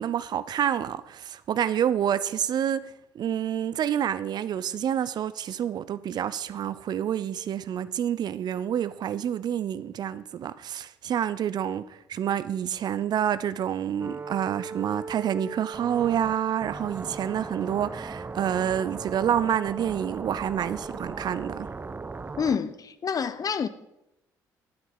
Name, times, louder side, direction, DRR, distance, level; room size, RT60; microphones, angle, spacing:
voice 1, 0.0-21.7, right 9 dB, 50° right, 0.6 m, -28 dB
sound 1, 14.0-22.6, right 4 dB, 20° right, 0.8 m, -38 dB
voice 2, 22.4-23.7, left 6 dB, 40° left, 0.9 m, -27 dB
11.5 x 9.4 x 5.5 m
figure-of-eight pair, 50°, 9 cm